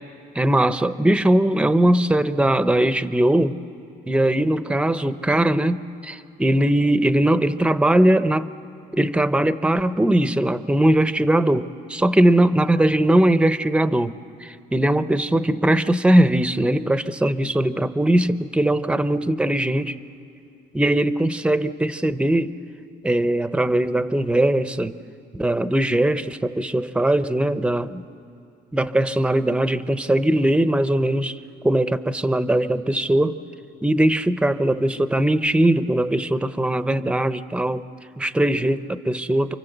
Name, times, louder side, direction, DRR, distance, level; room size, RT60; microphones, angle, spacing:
voice 1, 0.3-3.6 4.1-8.5 8.9-20.0 20.7-22.5 23.0-25.0 25.3-28.0 28.7-31.4 31.6-33.4 33.8-37.8 38.2-39.6, right 1 dB, 5° right, 13 dB, 0.7 m, -20 dB
28.5 x 25.0 x 8.0 m, 2.5 s
cardioid pair, 110°, 17 cm